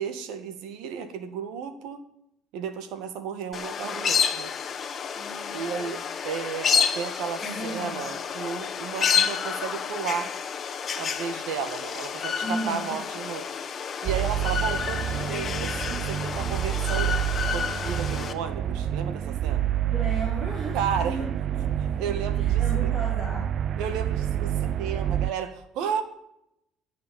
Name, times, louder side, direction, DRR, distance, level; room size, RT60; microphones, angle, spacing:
voice 1, 0.0-2.0 2.5-4.5 5.5-10.3 11.0-13.5 14.0-17.2 17.5-19.7 20.7-21.2 22.0-22.9 23.8-26.0, right 7 dB, 80° right, 10 dB, 2.0 m, -33 dB
sound 1, 3.5-18.3, left 7 dB, 35° left, 1.2 m, -29 dB
voice 2, 5.1-6.0 7.4-8.1 12.4-13.0 19.9-21.9 22.3-23.5, right 2 dB, 25° right, -4 dB, 4.7 m, -35 dB
sound 2, 14.1-25.3, right 11 dB, 45° right, 0.4 m, -28 dB
16.5 x 6.6 x 8.6 m, 0.79 s
cardioid pair, 140°, 0 cm